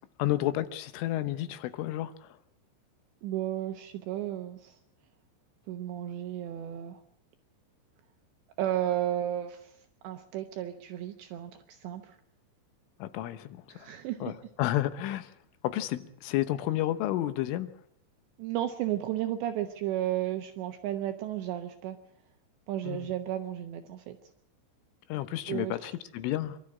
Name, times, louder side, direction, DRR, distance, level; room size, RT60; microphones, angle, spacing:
voice 1, 0.2-2.3 13.0-13.9 14.2-15.3 15.6-17.7 22.9-23.1 25.1-26.6, left 14 dB, 80° left, 12 dB, 3.5 m, -31 dB
voice 2, 3.2-4.8 5.7-7.0 8.6-9.8 10.0-12.2 13.7-14.3 18.4-22.0 22.7-24.2 25.5-25.8, right 12 dB, 75° right, 6 dB, 3.0 m, -33 dB
27.0 x 13.0 x 8.6 m, 0.72 s
omnidirectional pair, 5.7 m